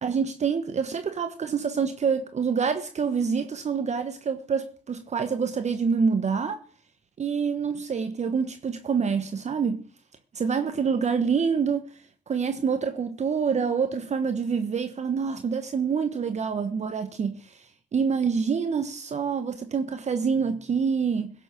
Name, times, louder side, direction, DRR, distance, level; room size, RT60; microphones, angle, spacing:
voice 1, 0.0-6.6 7.2-9.8 10.4-11.9 12.3-17.6 17.9-21.3, right 6 dB, 45° right, 1.2 m, -26 dB
16.5 x 6.9 x 6.4 m
hypercardioid pair, 50°, 16 cm